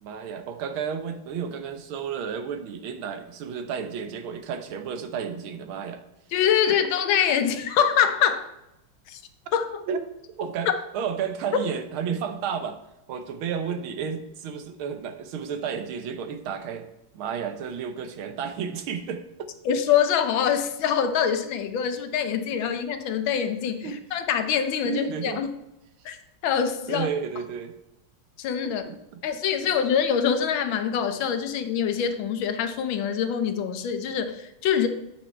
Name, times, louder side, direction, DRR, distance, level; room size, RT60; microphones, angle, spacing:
voice 1, 0.0-6.0 6.7-6.8 9.9-10.1 10.4-12.8 13.1-16.9 17.1-19.2 23.8-24.0 24.8-25.4 26.9-27.7 28.6-29.2 29.6-29.7, right 7 dB, 90° right, 8 dB, 1.7 m, -32 dB
voice 2, 6.3-8.5 9.1-9.2 9.5-9.8 19.6-25.5 26.0-26.2 26.4-27.1 28.4-28.8 29.2-34.9, left 8 dB, 75° left, 8 dB, 1.5 m, -24 dB
8.5 x 5.9 x 4.4 m, 0.89 s
omnidirectional pair, 2.2 m